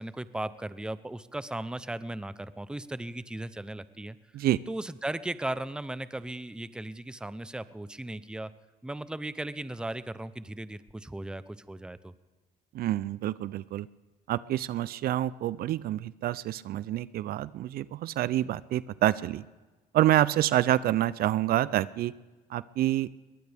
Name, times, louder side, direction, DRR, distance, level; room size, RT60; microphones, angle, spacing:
voice 1, 0.0-4.2 4.7-8.5 8.8-12.1, right 1 dB, 5° right, 14 dB, 0.6 m, -37 dB
voice 2, 12.7-13.9 14.3-19.4 19.9-22.1 22.5-23.1, right 13 dB, 65° right, 18 dB, 0.5 m, -27 dB
22.0 x 19.0 x 3.5 m, 1.2 s
cardioid pair, 110°, 17 cm